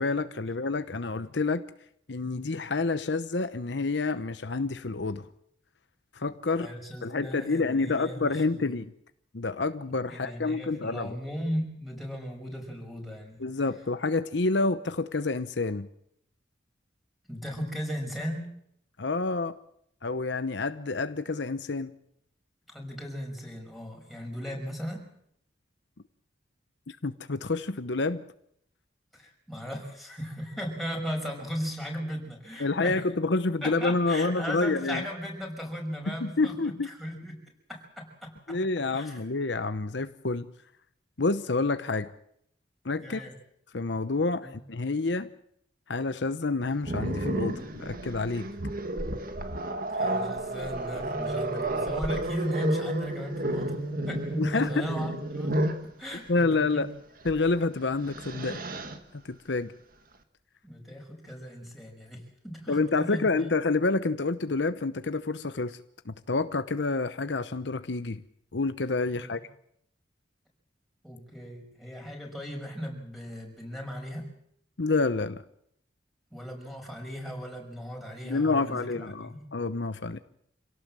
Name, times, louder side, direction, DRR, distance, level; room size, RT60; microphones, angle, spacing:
voice 1, 0.0-1.6 2.1-5.3 6.1-6.7 7.0-8.9 9.3-11.2 13.4-15.9 19.0-19.5 20.0-21.9 26.9-28.2 32.6-35.0 36.1-36.9 38.5-40.5 41.2-42.1 42.8-43.2 43.7-45.3 45.9-48.5 54.4-54.9 56.3-56.9 57.2-58.6 59.1-59.7 62.7-65.8 66.1-68.2 68.5-69.4 74.8-75.4 78.2-80.2, left 3 dB, 70° left, 11 dB, 0.9 m, -28 dB
voice 2, 6.5-8.8 10.1-13.4 17.3-18.5 22.7-25.1 29.1-33.0 33.6-37.4 37.7-38.6 38.9-39.2 43.0-43.3 44.4-44.6 49.9-55.6 55.8-56.9 60.6-63.5 69.2-69.3 71.0-74.3 76.3-79.4, equal, ahead, 0 dB, 5.9 m, -37 dB
Growling, 46.8-55.9 57.2-57.4 57.8-59.0, right 1 dB, 50° right, 1.8 m, -31 dB
27.0 x 17.5 x 7.6 m, 0.73 s
head